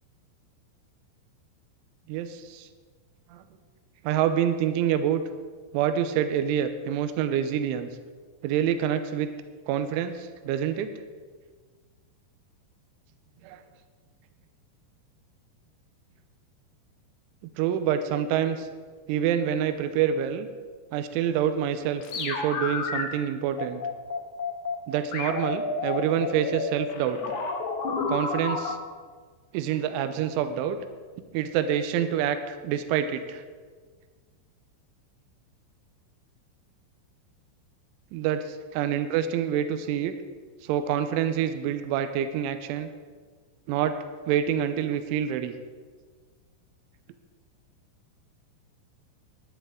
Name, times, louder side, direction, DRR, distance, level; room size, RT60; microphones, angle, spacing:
voice 1, 2.1-2.7 3.3-3.4 4.0-5.2 5.7-7.9 8.4-9.3 9.7-10.9 13.4-13.6 17.4-18.7 19.1-20.5 20.9-23.8 24.9-27.2 28.1-28.8 29.5-30.8 31.3-33.4 38.1-40.1 40.6-42.9 43.7-44.0 44.3-45.5, right 9 dB, 85° right, 9 dB, 3.1 m, -27 dB
sound 1, 22.0-23.0 23.6-24.8 25.1-28.7, left 4 dB, 80° left, 1.7 m, -30 dB
17.5 x 10.5 x 3.8 m, 1.5 s
omnidirectional pair, 5.7 m